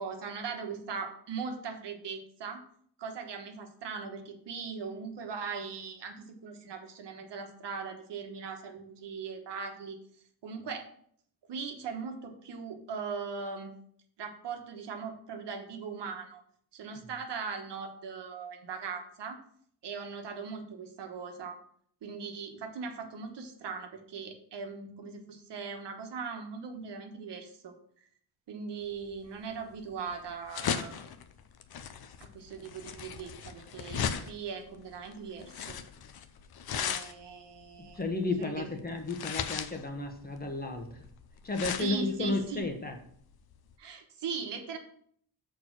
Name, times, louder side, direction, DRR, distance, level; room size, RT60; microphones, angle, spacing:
voice 1, 0.0-2.6 3.0-10.0 10.4-10.9 11.5-13.7 14.2-16.4 16.7-19.4 19.8-21.6 22.0-27.7 28.5-31.0 32.2-35.8 36.7-38.0 38.4-38.7 41.8-42.6 43.8-44.8, right 5 dB, 85° right, 4 dB, 1.3 m, -39 dB
sound 1, 29.0-43.7, left 7 dB, 60° left, 0.7 m, -38 dB
voice 2, 37.9-41.0 41.4-43.0, left 3 dB, 20° left, 4 dB, 1.1 m, -33 dB
6.4 x 4.6 x 6.0 m, 0.62 s
wide cardioid pair, 150°, 41 cm